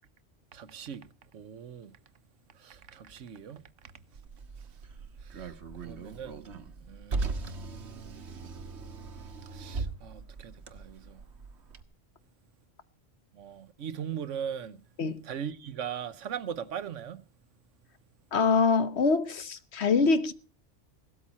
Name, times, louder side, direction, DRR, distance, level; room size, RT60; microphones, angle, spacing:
voice 1, 0.5-1.1 1.3-2.0 2.6-3.6 5.2-5.5 5.8-6.4 6.9-7.6 9.5-11.2 13.3-14.8 15.2-17.2, right 8 dB, 85° right, 1.3 m, -39 dB
Car, 4.1-11.8, right 3 dB, 65° right, 1.5 m, -39 dB
voice 2, 18.3-20.3, left 4 dB, 65° left, 1.3 m, -24 dB
17.0 x 13.0 x 4.2 m
omnidirectional pair, 1.2 m